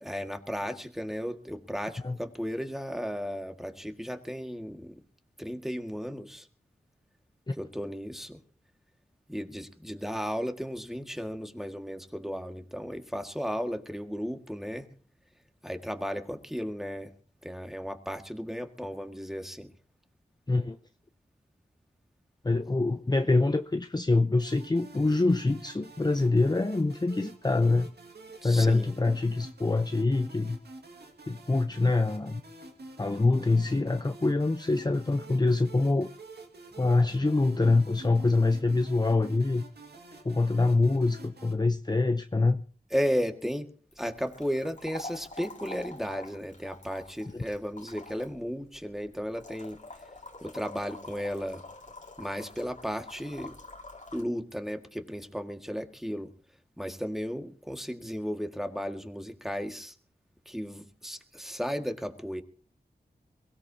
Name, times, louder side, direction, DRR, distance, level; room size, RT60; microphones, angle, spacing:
voice 1, 0.0-5.0 5.4-6.5 7.6-8.4 9.3-14.9 15.6-17.1 17.4-19.7 28.4-29.0 42.9-49.8 50.4-51.6 52.2-53.6 54.1-56.3 56.8-59.9 60.5-62.4, equal, ahead, 5 dB, 1.9 m, -34 dB
voice 2, 22.4-27.9 28.4-30.6 31.3-32.4 33.0-36.1 36.8-39.6 40.2-42.6 47.3-47.4, left 3 dB, 25° left, 8 dB, 0.7 m, -25 dB
sound 1, 24.4-41.5, right 2 dB, 75° right, 2.0 m, -48 dB
sound 2, 43.9-54.2, left 2 dB, 45° left, 2.3 m, -46 dB
22.5 x 16.5 x 2.8 m, 0.43 s
cardioid pair, 50°, 17 cm